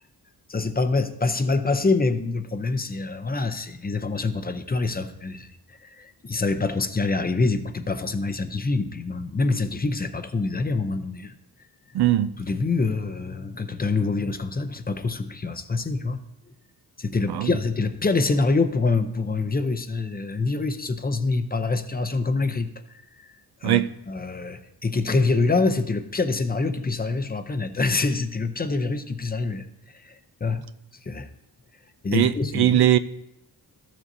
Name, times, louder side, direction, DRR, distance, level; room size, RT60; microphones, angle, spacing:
voice 1, 0.5-11.3 12.4-16.2 17.0-23.0 23.6-29.7 30.0-30.7 31.1-31.3 32.0-32.8, left 3 dB, 25° left, 0.6 m, -25 dB
voice 2, 11.9-12.3 17.3-17.5 23.6-23.9 32.1-33.0, right 13 dB, 70° right, 0.5 m, -20 dB
14.0 x 7.3 x 2.7 m
wide cardioid pair, 140°, 40 cm